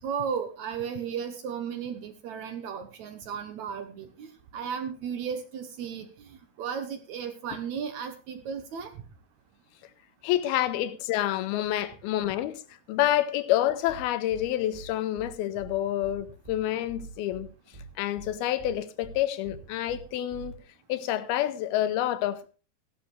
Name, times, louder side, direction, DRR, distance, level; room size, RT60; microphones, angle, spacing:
voice 1, 0.0-8.9, right 7 dB, 70° right, 1.8 m, -35 dB
voice 2, 10.2-12.6 12.9-17.5 18.0-20.5 20.9-22.5, left 13 dB, 85° left, 2.7 m, -28 dB
sound 1, 13.9-14.0 14.3-14.4 14.7-14.9 15.2-15.3 15.6-15.7 16.0-16.1 16.4-16.6 16.9-17.4 17.7-17.9 18.2-18.3 18.6-18.7 19.0-19.1 19.4-19.6 19.9-20.0 20.3-20.5, right 3 dB, 50° right, 0.5 m, -44 dB
15.5 x 11.5 x 3.2 m
omnidirectional pair, 4.4 m